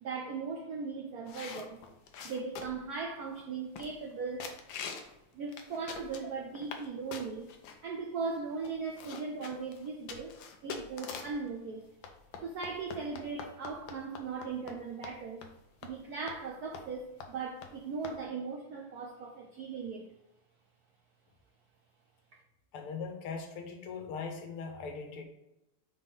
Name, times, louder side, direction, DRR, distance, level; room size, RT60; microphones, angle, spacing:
voice 1, 0.0-1.8 2.2-4.5 5.3-7.5 7.8-10.4 10.6-11.9 12.4-15.4 15.8-20.1, right 4 dB, 80° right, 1 dB, 0.8 m, -38 dB
sound 1, 1.3-2.9 3.4-3.5 3.8-4.1 4.4-5.1 5.5-6.9 7.1-7.8 8.3-8.4 8.6-11.4 12.0-14.8 15.0-15.2 15.4-15.5 15.8-15.9 16.3-16.4 16.7-16.9 17.2-17.3 17.6-17.7 18.0-18.2, left 6 dB, 70° left, 1.3 m, -44 dB
voice 2, 22.7-25.2, left 5 dB, 90° left, 4 dB, 1.9 m, -40 dB
5.0 x 3.6 x 5.5 m, 0.90 s
omnidirectional pair, 2.4 m